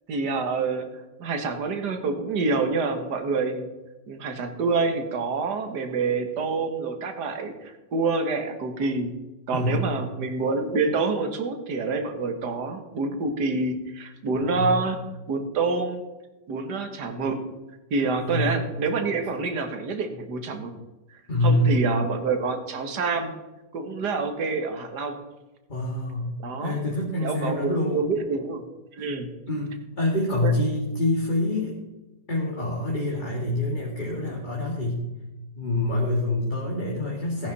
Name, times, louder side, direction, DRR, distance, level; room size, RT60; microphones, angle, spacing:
voice 1, 0.1-0.9 1.2-3.7 4.1-9.1 9.5-15.0 15.3-16.0 16.5-17.4 17.9-20.7 21.4-23.3 23.7-25.2 26.4-26.8 27.2-28.7 28.9-29.3 30.4-30.5, right 4 dB, 70° right, 6 dB, 2.1 m, -27 dB
voice 2, 9.5-9.9 14.4-14.7 18.1-18.6 21.3-21.8 25.7-28.1 29.0-29.1 29.5-31.8 32.3-35.0 35.5-37.5, left 1 dB, 25° left, -3 dB, 2.4 m, -26 dB
17.5 x 10.5 x 4.2 m, 1.1 s
omnidirectional pair, 1.9 m